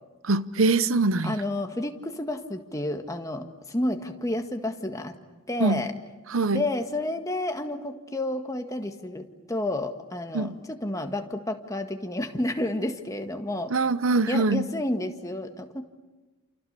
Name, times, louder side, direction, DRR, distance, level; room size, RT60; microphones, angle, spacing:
voice 1, 0.2-1.4 5.6-5.8 6.3-6.6 10.3-10.6 13.7-14.7, right 3 dB, 80° right, 0.9 m, -23 dB
voice 2, 1.2-5.2 5.5-5.9 6.5-13.7 14.3-15.8, left 1 dB, 15° left, 1.7 m, -30 dB
29.0 x 28.5 x 6.8 m
head